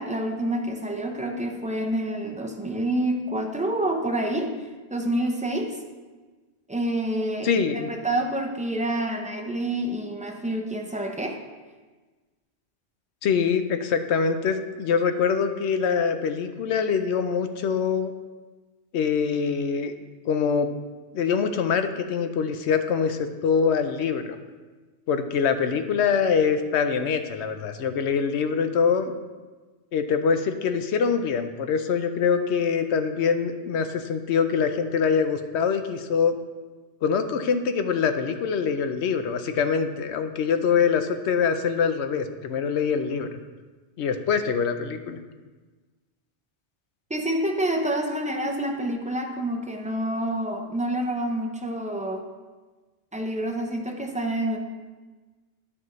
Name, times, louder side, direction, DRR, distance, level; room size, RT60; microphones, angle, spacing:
voice 1, 0.0-5.8 6.7-11.4 47.1-52.2 53.1-54.6, right 1 dB, 10° right, 2 dB, 0.5 m, -28 dB
voice 2, 7.4-7.9 13.2-18.1 18.9-19.9 20.3-20.7 21.1-24.4 25.1-29.1 29.9-36.4 37.0-43.4 44.0-45.2, left 6 dB, 75° left, 8 dB, 0.9 m, -24 dB
11.5 x 5.7 x 3.1 m, 1.3 s
omnidirectional pair, 1.2 m